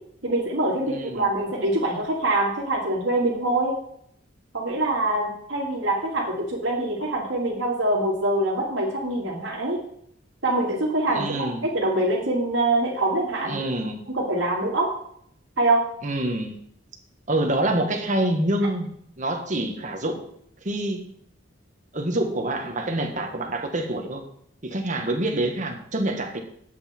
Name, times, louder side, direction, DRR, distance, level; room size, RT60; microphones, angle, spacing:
voice 1, 0.2-3.8 4.5-9.8 10.4-13.6 14.1-14.9 15.6-15.9, right 2 dB, 70° right, -4 dB, 2.6 m, -24 dB
voice 2, 0.9-1.3 11.1-11.6 13.5-14.0 16.0-16.5 17.3-18.9 19.2-20.3 20.6-21.1 21.9-24.2 24.6-26.4, right 1 dB, 40° right, 4 dB, 1.6 m, -26 dB
10.0 x 8.2 x 4.4 m, 0.68 s
head